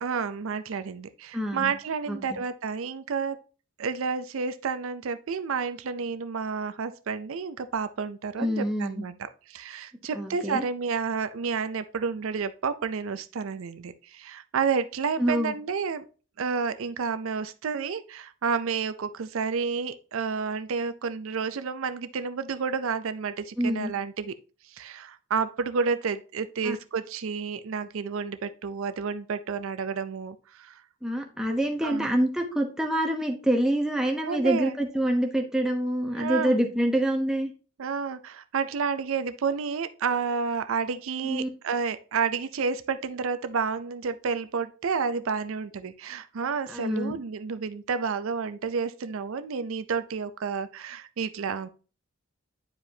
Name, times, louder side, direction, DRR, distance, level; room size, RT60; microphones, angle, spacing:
voice 1, 0.0-3.4 3.8-16.0 16.4-24.3 24.7-30.8 31.8-32.1 34.2-34.7 36.1-36.6 37.8-51.7, right 5 dB, 70° right, 12 dB, 0.4 m, -30 dB
voice 2, 1.3-1.7 2.1-2.2 8.4-9.0 10.1-10.6 15.2-15.5 23.6-23.9 26.6-26.8 31.0-37.5 41.2-41.5 46.7-47.1, right 1 dB, 5° right, 1 dB, 0.8 m, -26 dB
9.3 x 4.8 x 2.7 m, 0.36 s
head